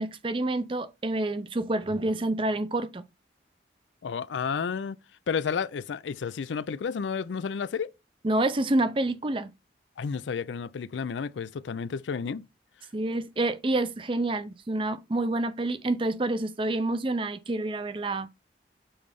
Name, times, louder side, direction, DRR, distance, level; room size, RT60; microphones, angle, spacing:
voice 1, 0.0-3.0 8.2-9.5 12.9-18.3, right 2 dB, 30° right, 0.5 m, -28 dB
voice 2, 4.0-5.0 5.3-7.9 10.0-12.4, left 6 dB, 90° left, 0.4 m, -31 dB
7.0 x 3.3 x 5.2 m
head